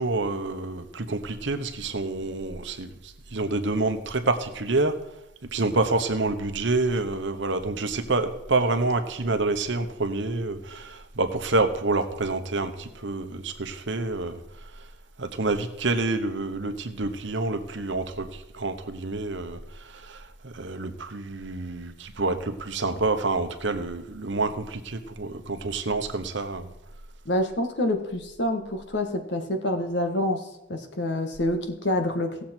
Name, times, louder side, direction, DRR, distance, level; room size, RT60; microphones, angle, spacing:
voice 1, 0.0-4.9 5.5-14.7 15.2-26.7, right 3 dB, 65° right, 8 dB, 1.0 m, -28 dB
voice 2, 27.2-30.4 30.7-32.4, left 1 dB, 60° left, 5 dB, 1.5 m, -27 dB
17.5 x 7.4 x 4.4 m, 0.89 s
head